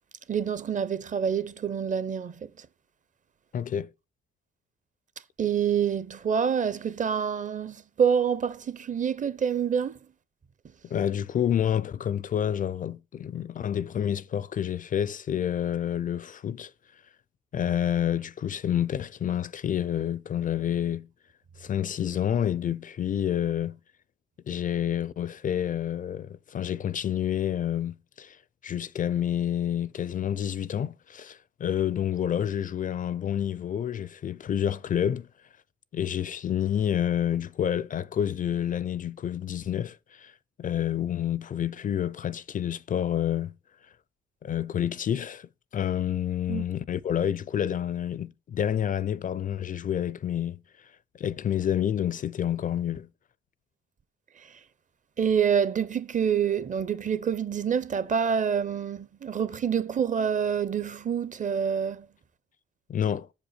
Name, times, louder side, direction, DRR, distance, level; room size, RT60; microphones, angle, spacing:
voice 1, 0.3-2.7 5.4-10.0 46.5-46.7 55.2-62.1, right 7 dB, 40° right, 0.7 m, -27 dB
voice 2, 3.5-3.9 10.9-16.7 17.5-21.1 21.6-23.8 24.5-28.4 28.6-35.3 35.9-40.3 40.6-43.5 44.4-50.6 51.2-53.1 62.9-63.3, left 10 dB, 45° left, 0.4 m, -28 dB
7.0 x 5.2 x 6.7 m
cardioid pair, 90°, 20 cm